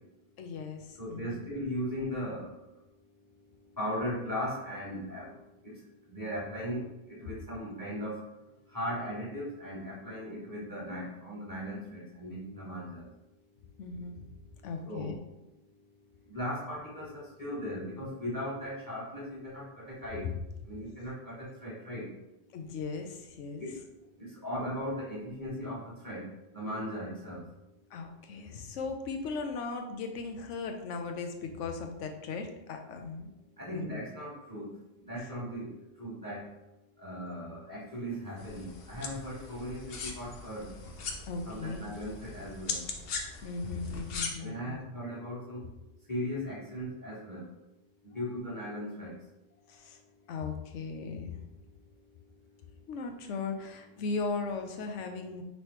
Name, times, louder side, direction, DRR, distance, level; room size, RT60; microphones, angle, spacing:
voice 1, 0.4-1.4 13.8-14.3 14.6-15.2 22.5-23.7 27.9-33.3 33.7-34.0 41.3-41.8 43.4-44.8 49.7-50.0 50.3-51.4 52.9-55.4, left 4 dB, 75° left, 5 dB, 1.0 m, -37 dB
voice 2, 1.0-2.5 3.8-5.3 6.1-8.2 8.7-13.1 14.9-15.2 16.3-20.2 20.7-21.3 21.6-22.1 23.6-23.8 24.4-26.2 26.5-27.4 33.6-34.7 35.0-35.7 36.0-36.5 37.0-40.7 41.4-42.8 44.4-45.6 46.1-47.5 48.0-49.1, equal, 15° left, -6 dB, 1.4 m, -37 dB
sound 1, 38.4-44.3, left 4 dB, 60° left, 0.8 m, -40 dB
5.3 x 3.0 x 3.2 m, 0.93 s
omnidirectional pair, 1.3 m